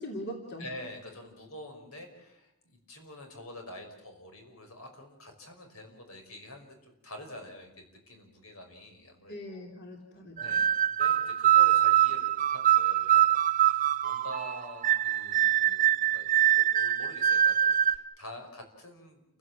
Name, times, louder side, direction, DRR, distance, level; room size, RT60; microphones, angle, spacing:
voice 1, 0.0-0.7 9.3-10.6, equal, 50° left, 2 dB, 3.2 m, -41 dB
voice 2, 0.6-9.7 10.4-13.2 13.6-19.4, left 1 dB, 80° left, 5 dB, 5.6 m, -47 dB
sound 1, 10.4-17.9, right 11 dB, 40° right, 0.8 m, -24 dB
29.5 x 16.5 x 7.4 m, 0.89 s
head